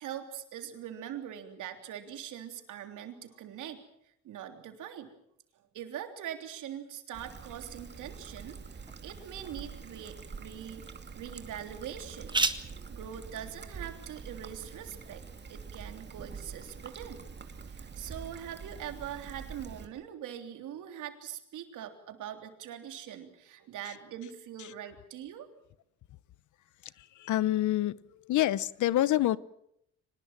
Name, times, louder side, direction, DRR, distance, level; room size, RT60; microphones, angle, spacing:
voice 1, 0.0-3.8 4.2-5.1 5.7-8.6 9.0-12.4 12.9-15.2 15.5-17.2 17.7-25.5, right 10 dB, 80° right, 6 dB, 3.4 m, -42 dB
Trickle dribble, 7.1-19.9, right 5 dB, 35° right, 2.5 m, -45 dB
sound 1, 8.3-15.8, right 2 dB, 15° right, 1.7 m, -39 dB
voice 2, 27.2-28.0 28.3-29.4, left 14 dB, 75° left, 19 dB, 0.9 m, -26 dB
24.0 x 20.0 x 7.5 m, 0.74 s
cardioid pair, 90°, 30 cm